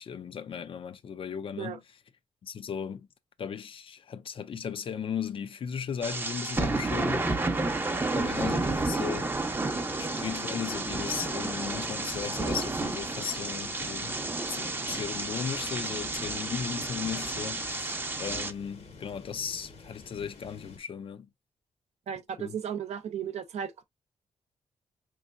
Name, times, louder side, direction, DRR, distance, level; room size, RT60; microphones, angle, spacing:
voice 1, 0.0-1.8 2.4-3.1 3.4-7.3 8.1-9.3 10.0-14.2 14.5-21.3 22.4-22.6, left 7 dB, 55° left, 0.4 m, -36 dB
sound 1, 6.0-18.5, right 2 dB, 20° right, 0.6 m, -31 dB
sound 2, 9.2-20.8, left 3 dB, 75° left, 1.1 m, -50 dB
voice 2, 22.1-23.8, right 8 dB, 80° right, 0.6 m, -35 dB
4.3 x 3.1 x 2.4 m
cardioid pair, 90°, 11 cm